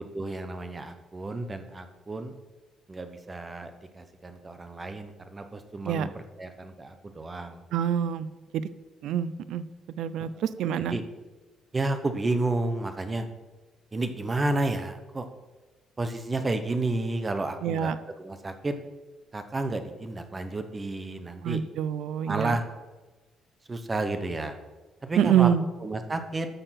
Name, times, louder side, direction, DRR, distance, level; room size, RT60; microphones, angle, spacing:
voice 1, 0.0-2.3 2.9-7.6 10.8-11.0 11.7-13.3 13.9-15.3 16.0-18.7 19.3-21.6 22.3-22.6 23.7-24.5 25.0-25.5 25.8-26.5, right 2 dB, 20° right, 8 dB, 1.0 m, -31 dB
voice 2, 7.7-8.7 9.0-9.7 10.0-11.0 17.6-18.0 21.4-22.6 25.2-25.6, right 9 dB, 75° right, 15 dB, 0.6 m, -26 dB
13.5 x 6.8 x 5.9 m, 1.2 s
cardioid pair, 155°, 0 cm